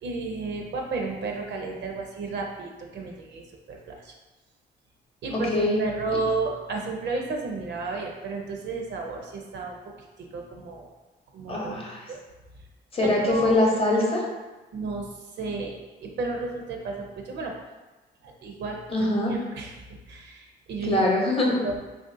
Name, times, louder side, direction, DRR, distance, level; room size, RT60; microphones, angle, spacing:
voice 1, 0.0-3.4 3.7-4.1 5.2-9.8 10.2-10.9 11.3-12.2 13.0-13.5 14.7-15.1 15.4-17.5 18.2-19.7 20.1-21.0 21.6-21.8, right 3 dB, 65° right, 1 dB, 0.5 m, -32 dB
voice 2, 5.3-5.8 11.5-12.0 12.9-14.2 18.9-19.3 20.8-21.6, left 1 dB, 30° left, -2 dB, 0.8 m, -23 dB
3.3 x 2.5 x 2.5 m, 1.2 s
cardioid pair, 90°, 20 cm